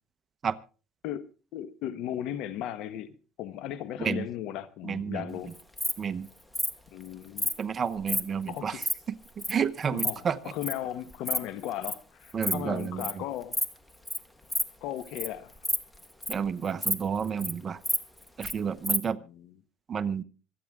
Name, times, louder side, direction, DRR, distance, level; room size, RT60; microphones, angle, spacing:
voice 1, 1.0-5.5 6.9-7.5 8.5-8.8 9.9-13.6 14.8-15.5 19.0-19.5, left 11 dB, 65° left, 1.2 m, -36 dB
voice 2, 4.8-5.3 6.0-6.3 7.6-8.8 9.4-10.4 12.3-13.2 16.3-17.8 18.4-19.2 19.9-20.2, right 7 dB, 30° right, 0.9 m, -30 dB
Insect, 5.5-5.9 6.5-6.7 7.4-7.6 8.0-8.2 8.6-8.9 9.4-9.5 9.8-10.1 10.6-10.8 11.1-11.4 11.6-11.9 12.3-12.5 12.8-13.1 13.5-13.7 14.1-14.2 14.5-14.6 15.0-15.3 15.6-16.5 16.8-16.9 17.2-17.5 17.8-18.5 18.8-19.0, left 1 dB, 5° left, 1.4 m, -29 dB
26.0 x 9.3 x 3.7 m
cardioid pair, 125°, 0 cm